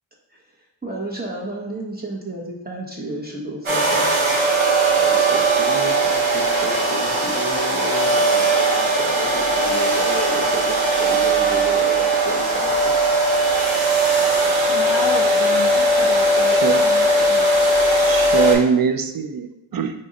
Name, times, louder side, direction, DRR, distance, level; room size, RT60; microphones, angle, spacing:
voice 1, 0.8-4.2 5.0-12.9, right 2 dB, 20° right, -4 dB, 1.0 m, -32 dB
sound 1, 3.7-18.6, right 2 dB, 85° right, 1.0 m, -18 dB
voice 2, 14.7-17.5, left 3 dB, 45° left, 0 dB, 0.6 m, -31 dB
voice 3, 16.5-16.8 18.0-19.9, right 7 dB, 50° right, 8 dB, 0.5 m, -22 dB
4.2 x 2.5 x 3.8 m, 0.86 s
cardioid pair, 40°, 48 cm